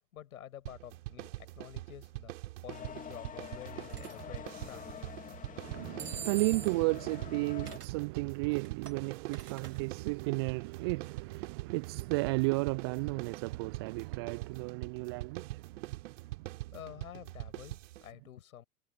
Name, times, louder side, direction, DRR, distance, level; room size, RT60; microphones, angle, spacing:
voice 1, 0.1-2.3 2.6-4.9 16.7-18.6, left 11 dB, 60° left, 7.5 m, -49 dB
sound 1, 0.7-18.1, right 18 dB, 50° right, 5.0 m, -43 dB
sound 2, 2.7-7.8, left 8 dB, 15° left, 2.7 m, -47 dB
sound 3, 3.9-4.1 6.0-6.9 7.7-8.0 8.5-9.8, right 7 dB, 70° right, 3.9 m, -44 dB
voice 2, 5.6-16.5, right 27 dB, 15° right, 0.4 m, -34 dB
figure-of-eight pair, 105°, 48 cm